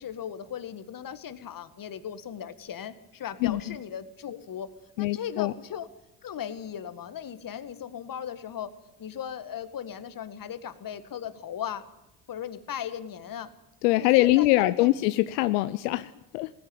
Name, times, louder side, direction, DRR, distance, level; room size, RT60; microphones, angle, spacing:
voice 1, 0.0-4.7 5.0-5.9 6.2-8.7 9.0-11.8 12.3-13.5 14.0-14.9, left 9 dB, 45° left, 12 dB, 1.9 m, -37 dB
voice 2, 3.4-3.7 5.0-5.5 13.8-16.5, left 17 dB, 80° left, 13 dB, 0.8 m, -23 dB
18.0 x 16.0 x 9.0 m, 0.90 s
hypercardioid pair, 60°, 48 cm